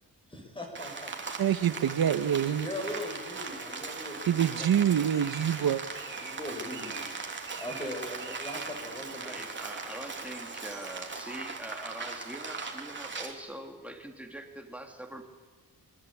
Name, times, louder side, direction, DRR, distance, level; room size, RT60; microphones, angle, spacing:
voice 1, 0.3-1.4 2.3-5.1 6.1-7.1 7.6-9.4, left 1 dB, 15° left, 2 dB, 6.0 m, -40 dB
Rain, 0.8-13.3, right 4 dB, 30° right, 3.0 m, -39 dB
voice 2, 1.4-2.7 4.3-5.8, right 9 dB, 85° right, 12 dB, 1.4 m, -26 dB
voice 3, 9.2-15.2, right 1 dB, 5° right, 3 dB, 2.9 m, -43 dB
27.0 x 23.5 x 8.7 m, 1.3 s
wide cardioid pair, 175°, 36 cm